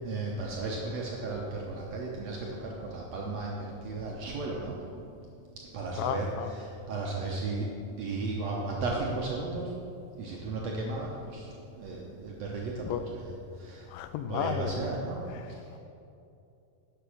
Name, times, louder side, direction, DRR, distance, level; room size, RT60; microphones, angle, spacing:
voice 1, 0.0-4.7 5.7-7.7 8.0-9.7 10.1-13.9 14.3-15.2 15.5-15.6, right 3 dB, 70° right, -2 dB, 1.6 m, -35 dB
voice 2, 6.0-6.5 12.9-13.0 13.9-14.9 15.3-15.8, left 9 dB, 90° left, 10 dB, 2.5 m, -34 dB
10.0 x 7.3 x 6.4 m, 2.7 s
omnidirectional pair, 4.1 m